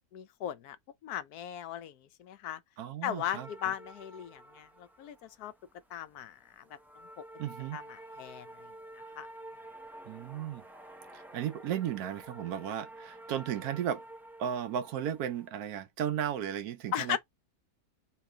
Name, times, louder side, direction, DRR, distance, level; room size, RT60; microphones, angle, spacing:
voice 1, 0.1-0.8 1.0-2.6 3.0-5.5 5.9-6.6 7.7-8.7 9.2-9.3 16.9-17.2, left 11 dB, 85° left, 1.2 m, -37 dB
voice 2, 2.8-3.5 7.4-7.8 10.0-10.6 11.1-14.0 14.4-17.2, right 9 dB, 80° right, 1.2 m, -35 dB
sound 1, 3.3-15.5, right 1 dB, 5° right, 0.4 m, -50 dB
3.5 x 3.1 x 4.8 m
omnidirectional pair, 1.6 m